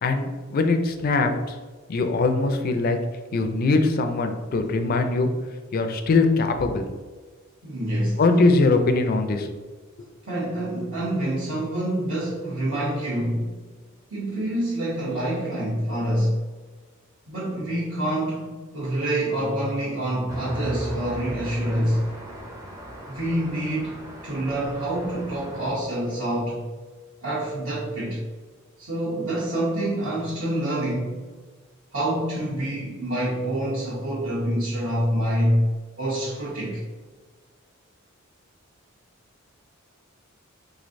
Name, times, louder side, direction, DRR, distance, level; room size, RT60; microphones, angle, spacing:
voice 1, 0.0-1.6 1.9-3.0 3.3-5.3 5.7-6.9 8.2-9.5, left 3 dB, 45° left, 6 dB, 0.4 m, -21 dB
voice 2, 7.6-8.4 10.2-13.6 14.1-16.4 17.3-22.1 23.1-26.7 27.2-28.2 28.8-31.2 31.9-35.6 36.0-36.8, right 1 dB, 70° right, -10 dB, 1.1 m, -26 dB
Traffic noise roadway noise, 20.3-25.7, right 1 dB, 15° right, 0.5 m, -38 dB
3.7 x 3.1 x 2.5 m, 1.4 s
head